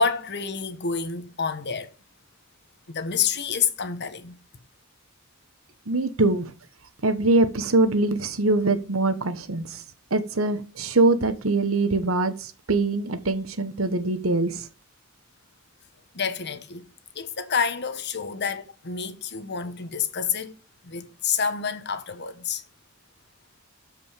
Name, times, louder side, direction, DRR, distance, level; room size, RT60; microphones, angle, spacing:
voice 1, 0.0-1.9 2.9-4.4 16.1-16.9 17.1-20.6 20.8-22.6, left 6 dB, 55° left, 1.2 m, -28 dB
voice 2, 5.9-6.5 7.0-9.8 10.1-14.7, right 2 dB, 70° right, 1.2 m, -23 dB
13.0 x 5.2 x 5.1 m
head